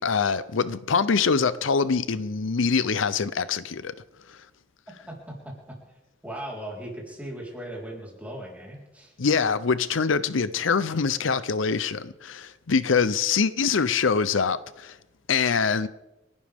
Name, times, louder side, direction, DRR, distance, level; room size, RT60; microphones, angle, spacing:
voice 1, 0.0-3.9 4.3-4.4 9.2-15.0 15.3-15.9, left 5 dB, 80° left, 0.6 m, -24 dB
voice 2, 5.1-9.1, right 1 dB, 10° right, 4.2 m, -38 dB
29.5 x 11.5 x 3.6 m
head